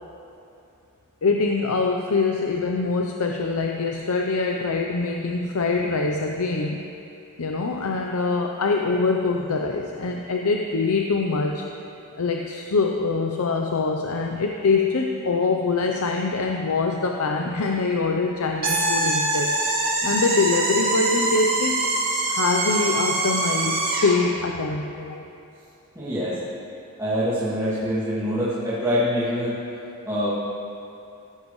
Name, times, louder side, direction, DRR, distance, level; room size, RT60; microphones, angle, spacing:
voice 1, 1.2-6.8 7.4-11.7 12.2-19.5 20.0-21.8 22.3-25.2, left 3 dB, 80° left, 2 dB, 0.7 m, -24 dB
sound 1, 18.6-24.2, right 2 dB, 45° right, 2.5 m, -24 dB
voice 2, 26.0-26.4 27.0-29.5 30.1-30.3, equal, 15° right, -12 dB, 2.3 m, -24 dB
16.0 x 14.0 x 3.2 m, 2.7 s
head